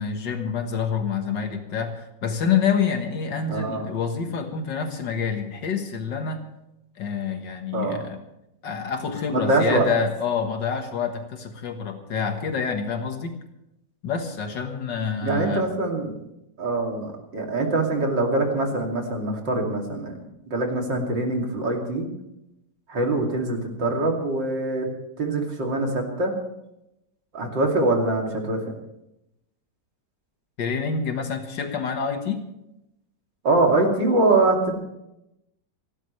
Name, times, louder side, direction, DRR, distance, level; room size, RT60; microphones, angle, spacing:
voice 1, 0.0-6.4 7.0-8.2 8.6-13.4 14.0-15.7 30.6-32.4, left 6 dB, 80° left, 5 dB, 2.1 m, -27 dB
voice 2, 3.5-3.9 7.7-8.0 9.3-9.9 15.2-16.2 16.6-20.2 20.5-22.1 22.9-24.9 25.2-26.3 27.3-28.6 33.4-34.8, right 2 dB, 90° right, 1 dB, 3.4 m, -23 dB
28.0 x 12.5 x 3.3 m, 0.87 s
omnidirectional pair, 1.9 m